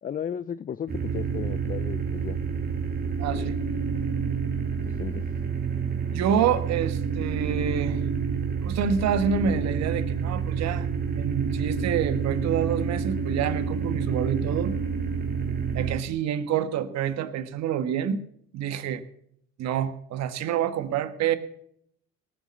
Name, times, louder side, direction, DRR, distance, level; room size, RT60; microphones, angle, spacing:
voice 1, 0.0-2.4 3.3-3.5 4.8-5.3, left 8 dB, 30° left, 16 dB, 0.5 m, -35 dB
sound 1, 0.9-16.0, right 6 dB, 35° right, 2.6 m, -28 dB
voice 2, 3.2-3.6 6.1-8.0 8.6-10.9 11.1-14.7 15.7-18.2 18.5-19.0 19.6-21.4, right 8 dB, 65° right, 11 dB, 1.4 m, -27 dB
18.5 x 7.1 x 7.4 m, 0.69 s
supercardioid pair, 75°, 29 cm